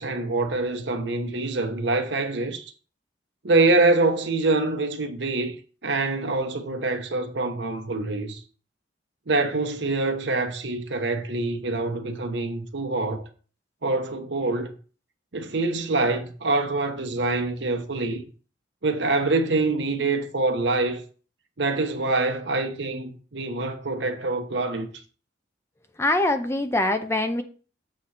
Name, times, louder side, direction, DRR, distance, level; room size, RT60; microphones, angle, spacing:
voice 1, 0.0-2.7 3.4-5.6 5.8-8.4 9.3-13.3 13.8-14.8 15.3-18.2 18.8-21.0 21.6-24.9, right 3 dB, 65° right, 1.0 m, -25 dB
voice 2, 26.0-27.4, left 2 dB, 15° left, 0.5 m, -23 dB
7.5 x 3.1 x 5.7 m
head